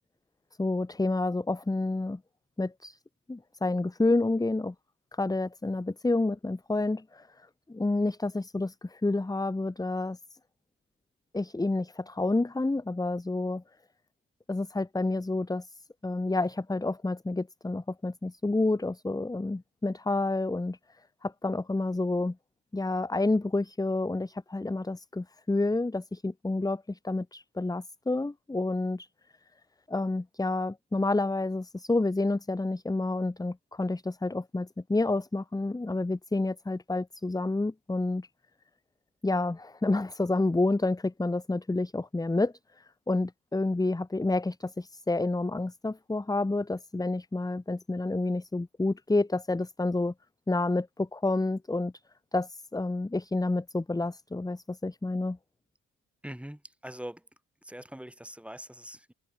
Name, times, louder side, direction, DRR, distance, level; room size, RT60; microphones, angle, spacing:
voice 1, 0.6-2.2 2.6-3.0 3.3-4.7 5.2-7.3 7.7-10.2 11.3-13.6 14.5-15.7 16.0-20.8 21.2-22.3 22.7-29.1 29.9-38.3 39.2-42.5 43.1-50.1 50.5-51.9 52.3-55.4, left 2 dB, 10° left, 1.5 m, -29 dB
voice 2, 56.2-57.3 57.6-59.1, right 1 dB, 5° right, 6.2 m, -43 dB
cardioid pair, 90°, 30 cm